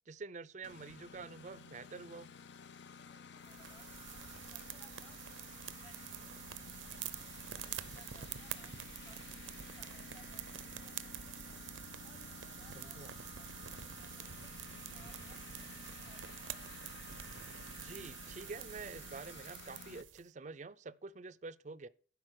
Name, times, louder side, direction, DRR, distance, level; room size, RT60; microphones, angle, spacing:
voice 1, 0.1-2.3 12.8-13.1 17.8-21.9, right 4 dB, 40° right, 0.4 m, -47 dB
Engine, 0.6-20.0, left 6 dB, 65° left, 0.6 m, -53 dB
voice 2, 2.9-6.3 6.8-9.4 9.8-11.6 12.0-16.8, left 2 dB, 25° left, 1.2 m, -66 dB
sound 1, 3.4-20.2, right 10 dB, 90° right, 0.6 m, -47 dB
12.0 x 5.2 x 6.3 m
head